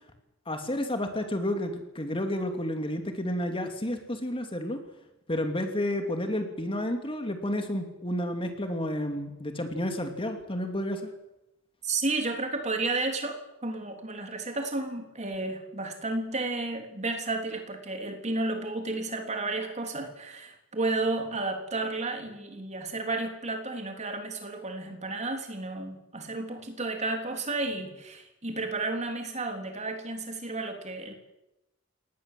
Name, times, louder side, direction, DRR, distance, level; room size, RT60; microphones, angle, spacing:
voice 1, 0.5-4.8 5.3-11.1, left 1 dB, 25° left, 5 dB, 2.6 m, -31 dB
voice 2, 11.8-31.1, right 2 dB, 35° right, 4 dB, 3.6 m, -32 dB
23.5 x 19.0 x 7.7 m, 0.92 s
head